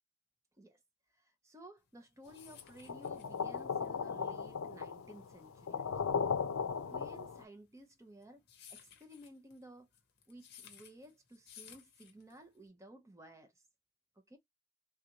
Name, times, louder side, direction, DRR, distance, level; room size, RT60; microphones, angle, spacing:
voice 1, 1.1-6.2 6.9-8.4 8.7-9.9 10.3-13.6 14.3-14.4, right 1 dB, 15° right, 0.7 m, -55 dB
sound 1, 1.9-12.7, left 9 dB, 50° left, 0.8 m, -58 dB
sound 2, 2.9-7.4, left 6 dB, 85° left, 0.5 m, -36 dB
3.5 x 2.5 x 2.9 m
head